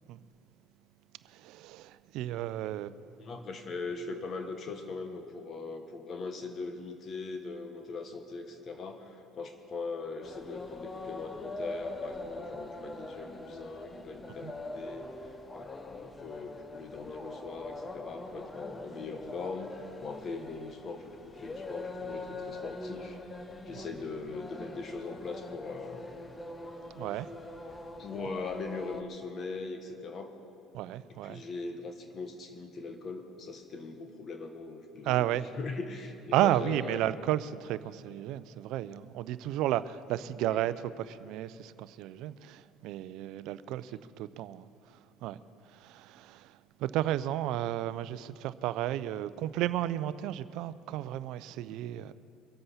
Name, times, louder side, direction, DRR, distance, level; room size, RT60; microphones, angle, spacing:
voice 1, 1.3-2.9 14.4-14.5 23.8-23.9 26.9-27.3 30.7-31.4 35.1-35.4 36.3-44.7 45.2-45.4 45.7-46.5 46.8-52.1, right 13 dB, 70° right, 0.5 m, -33 dB
voice 2, 3.2-15.1 15.5-23.2 23.6-26.1 28.0-30.3 31.1-35.3 35.6-37.0 40.4-40.7 43.9-44.0, left 4 dB, 40° left, 1.2 m, -40 dB
sound 1, 10.2-29.0, left 2 dB, 15° left, 1.0 m, -43 dB
23.5 x 7.8 x 5.7 m
supercardioid pair, 105°, 0 cm